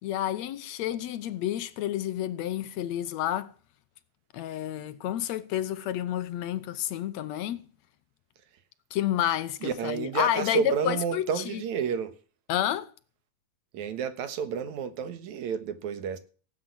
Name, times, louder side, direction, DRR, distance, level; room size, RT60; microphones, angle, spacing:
voice 1, 0.0-3.5 4.3-7.7 8.9-11.6 12.5-12.9, left 12 dB, 75° left, 1.9 m, -30 dB
voice 2, 9.6-12.1 13.7-16.2, right 7 dB, 75° right, 2.8 m, -30 dB
17.5 x 8.9 x 6.1 m
omnidirectional pair, 3.4 m